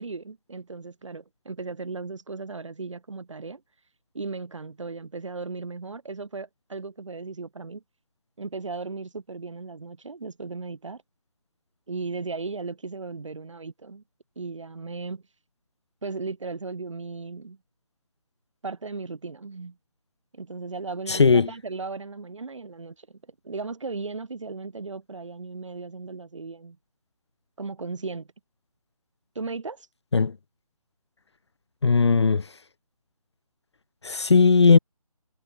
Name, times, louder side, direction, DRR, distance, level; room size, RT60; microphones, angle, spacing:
voice 1, 0.0-3.6 4.1-7.8 8.4-11.0 11.9-14.0 14.4-15.2 16.0-17.6 18.6-19.8 20.3-23.2 23.4-26.8 27.6-28.3 29.3-29.9, right 4 dB, 50° right, 4.0 m, -36 dB
voice 2, 21.1-21.5 30.1-30.3 31.8-32.5 34.0-34.8, left 4 dB, 45° left, 1.1 m, -18 dB
figure-of-eight pair, 155°, 19 cm